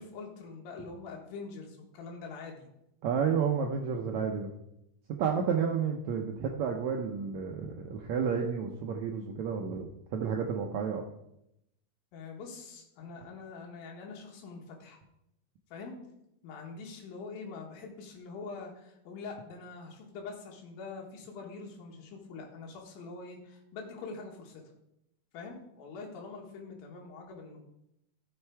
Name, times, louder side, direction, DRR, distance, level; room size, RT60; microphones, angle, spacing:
voice 1, 0.0-2.7 12.1-15.0 15.7-16.0 16.4-24.6 25.3-27.6, left 4 dB, 75° left, 0 dB, 3.3 m, -44 dB
voice 2, 3.0-4.5 5.1-11.0, right 6 dB, 90° right, 2 dB, 1.5 m, -31 dB
13.0 x 6.5 x 4.6 m, 0.82 s
omnidirectional pair, 4.3 m